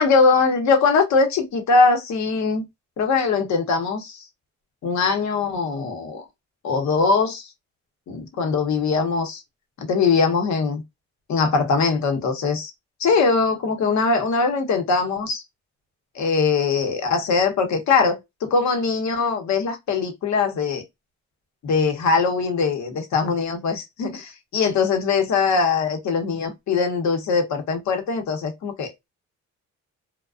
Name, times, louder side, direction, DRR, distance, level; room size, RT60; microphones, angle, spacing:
voice 1, 0.0-2.6 3.0-4.2 4.8-6.2 6.6-7.5 8.1-9.4 9.8-10.8 11.3-12.7 13.0-15.4 16.1-20.8 21.6-28.9, left 4 dB, 70° left, 0.9 m, -21 dB
2.4 x 2.2 x 2.3 m
cardioid pair, 90°, 30 cm